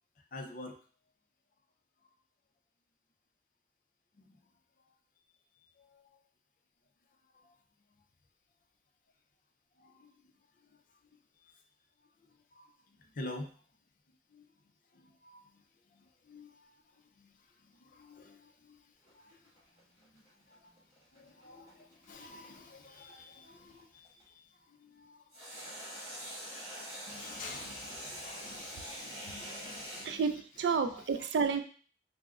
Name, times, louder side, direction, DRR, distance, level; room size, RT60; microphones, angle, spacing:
voice 1, 0.3-0.8 4.2-4.4 5.8-6.0 7.4-7.6 9.8-10.1 12.5-12.6 13.1-13.5 14.3-14.4 14.9-15.6 15.9-16.7 17.2-18.8 19.1-19.4 20.1-20.2 20.5-20.7 21.1-24.3 24.7-25.2 26.0-26.1 27.0-30.3 30.8-31.3, left 2 dB, 45° left, 3 dB, 0.4 m, -49 dB
sound 1, 19.0-24.2 25.3-30.1, equal, 15° right, 1.5 m, -45 dB
voice 2, 30.0-31.6, right 5 dB, 70° right, 8 dB, 0.3 m, -30 dB
4.6 x 2.0 x 2.4 m, 0.43 s
head